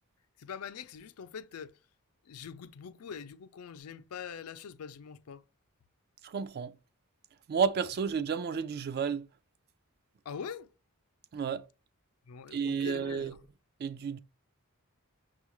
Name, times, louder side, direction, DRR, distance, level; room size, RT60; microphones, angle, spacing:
voice 1, 0.4-1.7 2.2-5.4 10.2-10.7 12.3-13.4, left 7 dB, 80° left, 0.4 m, -43 dB
voice 2, 6.2-6.7 7.5-9.2 11.3-11.6 12.5-13.3 13.8-14.2, right 6 dB, 45° right, 0.3 m, -31 dB
6.2 x 2.4 x 3.0 m
head